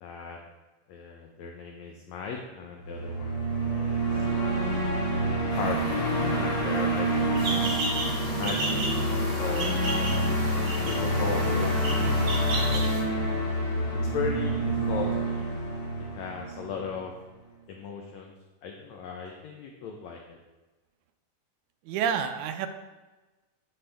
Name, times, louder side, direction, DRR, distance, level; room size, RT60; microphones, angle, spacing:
voice 1, 0.0-0.4 0.9-4.2 5.6-6.0 6.4-7.8 8.3-8.8 9.4-10.3 10.8-12.2 12.7-13.1 14.1-15.4 16.1-17.1 17.7-18.3 18.6-20.4, left 5 dB, 75° left, 1 dB, 1.8 m, -37 dB
sound 1, 2.8-17.0, right 1 dB, 50° left, 2.6 m, -27 dB
sound 2, 5.5-12.7, equal, 30° left, 0.5 m, -37 dB
sound 3, 7.4-13.0, right 2 dB, 60° right, 3.2 m, -34 dB
voice 2, 21.9-22.7, right 8 dB, 80° right, 8 dB, 1.8 m, -29 dB
11.5 x 4.3 x 3.4 m, 1.2 s
omnidirectional pair, 3.6 m